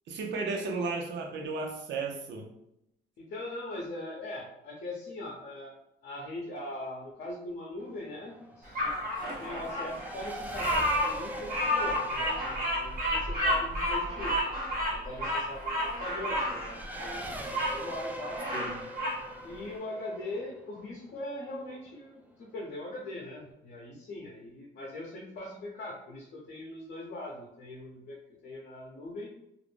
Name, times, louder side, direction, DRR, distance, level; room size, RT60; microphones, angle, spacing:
voice 1, 0.1-2.4 18.5-18.8, right 3 dB, 65° right, 2 dB, 0.6 m, -34 dB
voice 2, 3.2-5.8 6.0-8.9 9.4-14.4 14.9-18.4 19.4-28.2 28.4-29.3, left 1 dB, 55° left, -4 dB, 0.7 m, -41 dB
Race car auto racing / Accelerating revving vroom, 7.8-21.9, right 1 dB, 10° right, 0.4 m, -43 dB
Bird vocalization bird call bird song, 8.8-17.8 18.2-19.2, equal, 45° right, 1.1 m, -31 dB
2.5 x 2.0 x 3.2 m, 0.81 s
cardioid pair, 90°, 20 cm